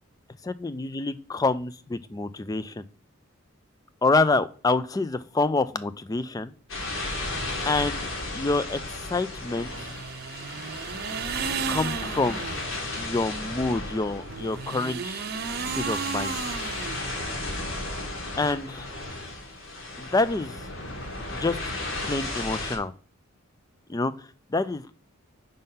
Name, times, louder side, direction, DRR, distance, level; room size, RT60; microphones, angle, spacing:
voice 1, 0.6-2.8 4.0-6.5 7.7-8.8 9.1-9.9 11.7-12.4 13.0-15.3 15.7-16.4 18.4-18.9 20.0-20.6 21.3-21.6 22.0-22.9 23.9-24.9, left 3 dB, 15° left, 14 dB, 0.3 m, -27 dB
sound 1, 6.7-22.8, left 2 dB, 60° left, 1.8 m, -35 dB
sound 2, 9.6-12.8 14.2-17.6, right 6 dB, 45° right, 0.5 m, -33 dB
5.3 x 3.7 x 5.6 m, 0.40 s
head